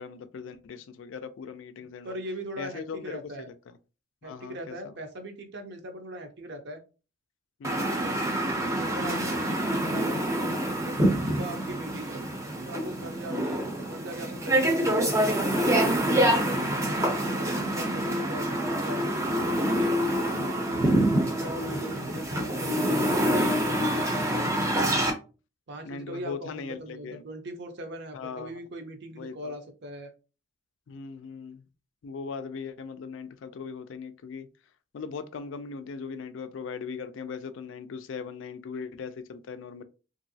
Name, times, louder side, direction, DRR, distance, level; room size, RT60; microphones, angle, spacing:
voice 1, 0.0-2.2 2.6-3.2 4.2-4.9 7.6-7.9 11.3-11.5 13.3-13.5 16.3-16.6 20.3-20.8 25.8-27.2 28.1-28.5 29.2-29.5 30.9-31.6 32.0-34.5 34.9-39.8, left 5 dB, 65° left, 0.3 m, -39 dB
voice 2, 1.8-3.5 4.2-6.8 7.7-8.1 8.7-10.2 10.8-12.2 12.7-15.5 15.9-19.0 20.6-24.5 25.7-30.1, right 1 dB, 55° right, 0.6 m, -40 dB
sound 1, 7.6-25.1, right 1 dB, 15° right, 0.5 m, -26 dB
3.0 x 2.6 x 2.6 m
head